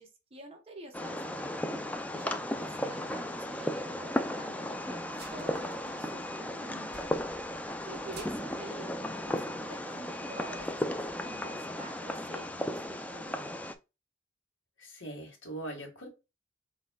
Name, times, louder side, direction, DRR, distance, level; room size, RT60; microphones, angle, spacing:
voice 1, 0.0-1.5 2.1-7.1 7.8-13.5, right 2 dB, 30° right, 1.1 m, -48 dB
Fireworks, 0.9-13.8, left 1 dB, 10° left, 0.4 m, -35 dB
voice 2, 2.6-3.2 14.8-16.1, right 1 dB, 80° left, 1.9 m, -43 dB
sound 1, 5.1-6.5 6.8-9.6 9.9-10.0 10.4-11.4, right 3 dB, 55° right, 1.3 m, -54 dB
4.1 x 4.0 x 2.3 m
head